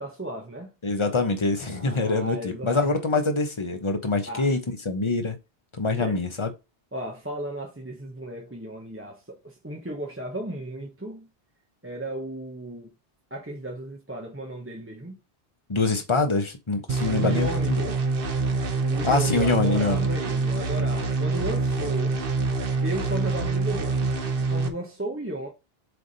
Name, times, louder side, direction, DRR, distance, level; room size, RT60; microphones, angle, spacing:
voice 1, 0.0-0.7 1.7-3.0 4.3-4.5 5.9-6.2 6.9-11.3 11.8-12.9 13.3-15.1 17.2-18.0 18.9-22.2 22.8-24.0 24.5-25.5, right 1 dB, 15° right, 1.0 m, -34 dB
voice 2, 0.8-5.4 5.8-6.5 15.7-17.8 19.0-20.0, left 3 dB, 30° left, 1.1 m, -25 dB
sound 1, 16.9-24.7, right 3 dB, 65° right, 1.2 m, -26 dB
8.0 x 3.5 x 4.1 m
omnidirectional pair, 1.0 m